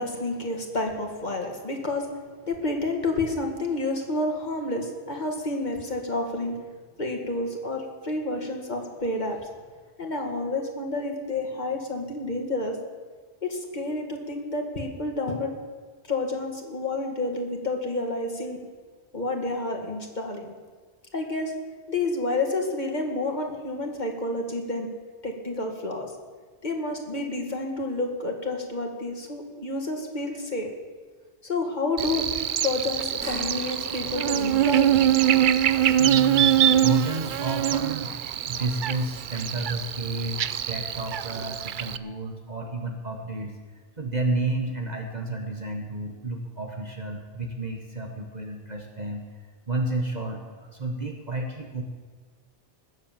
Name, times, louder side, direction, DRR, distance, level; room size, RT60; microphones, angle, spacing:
voice 1, 0.0-2.1 2.5-6.6 7.0-9.4 10.0-12.8 13.5-15.5 16.1-18.6 19.1-20.5 21.1-21.5 21.9-24.9 25.2-26.1 26.6-30.7 31.4-32.2 32.6-35.1, left 2 dB, 40° left, 2 dB, 2.3 m, -29 dB
Buzz, 32.0-42.0, right 11 dB, 55° right, 0.6 m, -24 dB
sound 1, 33.2-41.8 42.2-42.3 43.8-43.9, equal, 10° right, 5.9 m, -46 dB
voice 2, 36.0-38.1 38.4-43.6 44.0-51.8, right 2 dB, 40° right, 2 dB, 1.3 m, -31 dB
20.0 x 7.8 x 7.4 m, 1.5 s
omnidirectional pair, 1.2 m